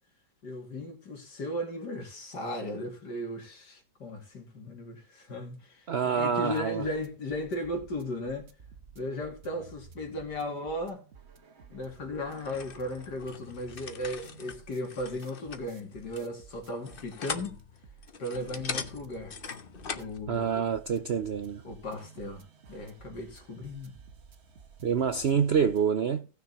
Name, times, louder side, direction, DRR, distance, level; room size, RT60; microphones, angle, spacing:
voice 1, 0.4-8.5 8.9-11.0 11.7-17.6 18.2-19.3 20.0-20.6 21.6-24.0, left 1 dB, 75° left, 3.2 m, -36 dB
voice 2, 5.9-6.8 20.3-21.6 24.8-26.3, right 7 dB, 65° right, 0.6 m, -27 dB
sound 1, 6.5-25.9, right 5 dB, 45° right, 1.3 m, -53 dB
sound 2, 12.3-20.2, left 6 dB, 40° left, 0.9 m, -41 dB
17.5 x 6.6 x 3.0 m
omnidirectional pair, 1.8 m